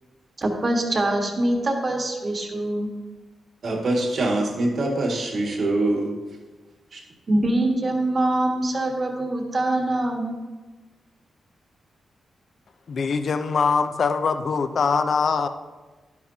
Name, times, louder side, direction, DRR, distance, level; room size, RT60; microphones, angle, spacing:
voice 1, 0.4-2.9 7.3-10.4, right 1 dB, 30° right, 2 dB, 1.4 m, -24 dB
voice 2, 3.6-6.1 6.9-7.0, right 2 dB, 50° right, -1 dB, 1.9 m, -24 dB
voice 3, 12.9-15.5, left 5 dB, 45° left, 9 dB, 0.6 m, -22 dB
11.0 x 10.5 x 2.8 m, 1.3 s
wide cardioid pair, 160°, 0 cm